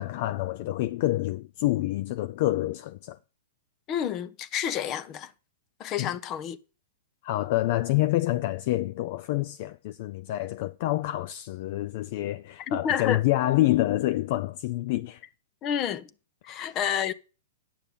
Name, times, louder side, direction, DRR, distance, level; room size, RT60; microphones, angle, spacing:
voice 1, 0.0-3.2 6.0-6.1 7.2-15.2 16.5-16.7, left 16 dB, 50° left, 0.4 m, -27 dB
voice 2, 3.9-5.3 5.8-6.6 12.6-13.2 15.6-16.1 16.4-17.1, left 9 dB, 35° left, 0.8 m, -29 dB
10.5 x 6.8 x 5.4 m
hypercardioid pair, 115°, 0 cm